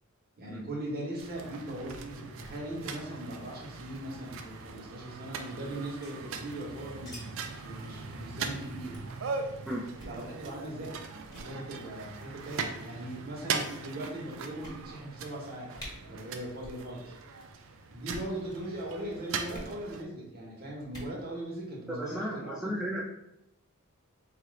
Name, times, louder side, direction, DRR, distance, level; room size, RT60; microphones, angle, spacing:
voice 1, 0.4-9.0 9.4-9.5 10.0-15.7 16.0-17.1 17.9-22.6, right 1 dB, 45° right, -3 dB, 1.2 m, -39 dB
sound 1, 1.2-20.0, right 5 dB, 65° right, 0.4 m, -40 dB
sound 2, 6.0-7.2 7.4-7.5 7.8-8.0 8.3-8.5 8.9-9.2 9.9-10.2 10.8-11.0 11.2-11.5 12.4-12.8 13.5-13.6 14.1-14.2 14.6-15.2 15.4-15.5 15.7-15.9 16.6-16.8 17.1-17.5 18.0-18.3 19.5-19.7 20.8-21.1, equal, 20° left, 1.4 m, -47 dB
voice 2, 21.9-23.0, equal, 5° right, -7 dB, 0.6 m, -34 dB
4.4 x 2.5 x 3.2 m, 0.81 s
head